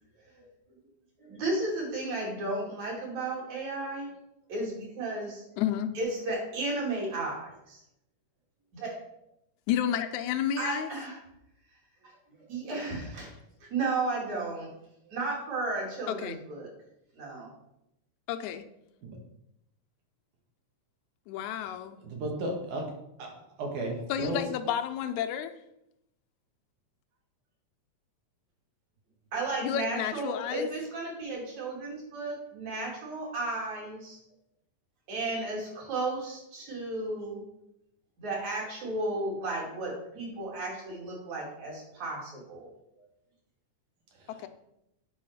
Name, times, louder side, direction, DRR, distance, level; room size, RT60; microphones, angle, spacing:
voice 1, 1.2-4.1 4.5-5.5 6.0-7.8 8.7-9.0 10.6-11.2 12.0-12.1 12.5-13.3 13.7-14.7 15.1-16.7 17.2-17.5 29.3-34.2 35.1-37.4 38.2-42.7, right 2 dB, 65° right, -3 dB, 3.9 m, -34 dB
voice 2, 5.6-5.9 9.7-10.9 16.1-16.4 18.3-18.7 21.3-22.0 24.1-25.6 29.6-30.7 44.3-44.5, left 10 dB, 85° left, 8 dB, 2.0 m, -31 dB
voice 3, 22.0-22.9 23.2-23.3 23.6-24.4 44.2-44.5, right 1 dB, 85° right, 0 dB, 3.3 m, -34 dB
8.4 x 4.6 x 6.5 m, 0.82 s
omnidirectional pair, 3.4 m